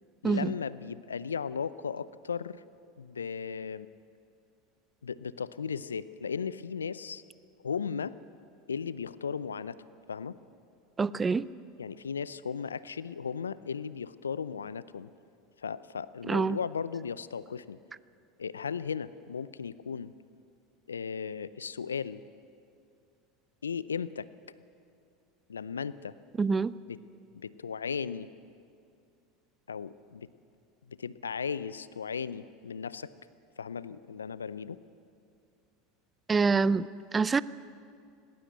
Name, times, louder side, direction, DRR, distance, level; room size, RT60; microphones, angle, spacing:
voice 1, 0.2-2.6 3.0-3.9 5.0-7.2 7.6-8.2 8.7-9.8 10.1-10.4 11.8-15.1 15.6-17.8 18.4-20.1 20.9-22.2 23.6-24.3 25.5-26.1 26.9-27.0 27.3-28.3 29.7-30.3 30.9-33.1 33.6-34.8, left 6 dB, 85° left, 18 dB, 0.5 m, -36 dB
voice 2, 11.0-11.5 16.3-16.6 26.4-26.7 36.3-37.4, right 4 dB, 20° right, 19 dB, 0.5 m, -26 dB
18.5 x 18.0 x 8.1 m, 2.4 s
hypercardioid pair, 80°, 0 cm